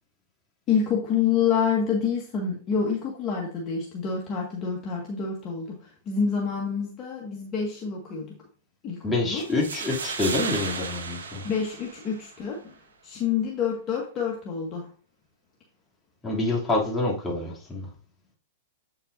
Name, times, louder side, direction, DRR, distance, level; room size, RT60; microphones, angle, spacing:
voice 1, 0.7-8.4 8.8-9.4 11.4-12.7 13.0-14.9, left 6 dB, 35° left, 1.7 m, -27 dB
voice 2, 9.0-11.4 16.2-17.9, left 2 dB, 15° left, 2.8 m, -27 dB
sound 1, 9.4-12.4, right 5 dB, 80° right, 1.4 m, -34 dB
8.6 x 5.8 x 2.6 m
hypercardioid pair, 115°, 0 cm